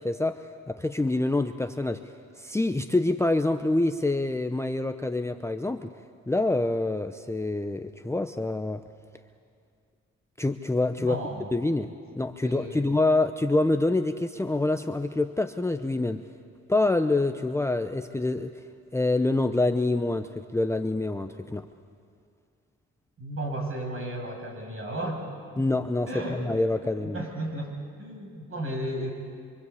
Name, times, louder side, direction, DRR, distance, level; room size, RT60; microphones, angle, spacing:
voice 1, 0.0-2.1 2.4-5.9 6.3-8.8 10.4-11.2 11.5-16.2 16.7-18.5 18.9-21.7 25.6-26.1 26.5-27.2, left 2 dB, 10° left, 7 dB, 0.8 m, -26 dB
voice 2, 11.0-11.7 12.4-12.9 23.2-25.2 25.5-25.7 26.1-26.5 26.9-29.1, right 1 dB, 45° right, 1 dB, 7.1 m, -34 dB
25.5 x 25.0 x 8.4 m, 2.3 s
cardioid pair, 90°, 30 cm